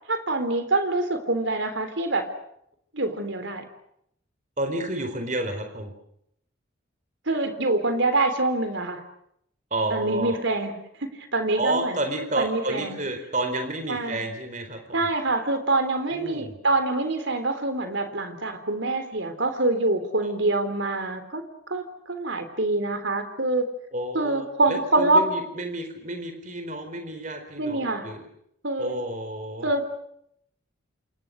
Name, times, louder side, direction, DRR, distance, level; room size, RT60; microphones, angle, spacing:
voice 1, 0.1-2.3 2.9-3.6 7.3-9.0 9.9-10.7 11.0-12.0 12.4-13.0 13.9-14.2 14.9-21.4 21.7-23.7 24.1-25.3 27.6-28.1 28.6-29.0 29.6-29.9, right 2 dB, 65° right, 9 dB, 3.7 m, -25 dB
voice 2, 4.6-5.9 9.7-10.4 11.6-15.1 16.1-16.6 20.2-20.3 23.9-28.2 28.8-29.9, right 2 dB, 35° right, 6 dB, 4.3 m, -31 dB
29.0 x 27.5 x 6.6 m, 0.75 s
head